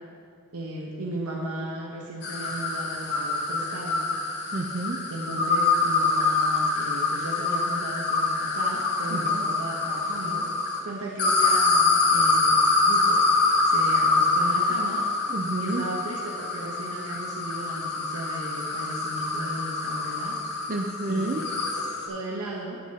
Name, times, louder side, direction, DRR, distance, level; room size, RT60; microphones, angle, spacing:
voice 1, 0.5-4.0 5.1-10.5 10.8-13.2 13.6-15.0 15.6-20.4 21.1-22.8, right 1 dB, 90° right, -2 dB, 1.0 m, -36 dB
sound 1, 2.2-10.8 11.2-22.1, left 3 dB, 50° left, 1.2 m, -25 dB
voice 2, 4.5-5.0 9.1-9.5 15.3-15.9 20.7-21.4, right 2 dB, 40° right, 2 dB, 0.5 m, -30 dB
17.5 x 6.5 x 2.9 m, 2.3 s
head